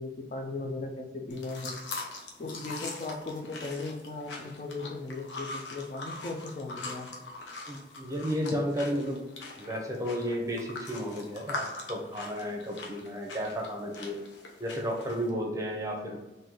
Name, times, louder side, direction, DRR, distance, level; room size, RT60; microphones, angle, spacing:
voice 1, 0.0-1.8 2.4-7.1, left 3 dB, 40° left, 2 dB, 0.5 m, -37 dB
sound 1, 1.3-15.3, left 3 dB, 90° left, 0.8 m, -42 dB
voice 2, 7.7-9.2 9.6-14.2 14.6-16.2, equal, 20° right, 0 dB, 0.7 m, -33 dB
3.6 x 2.7 x 3.8 m, 1.1 s
head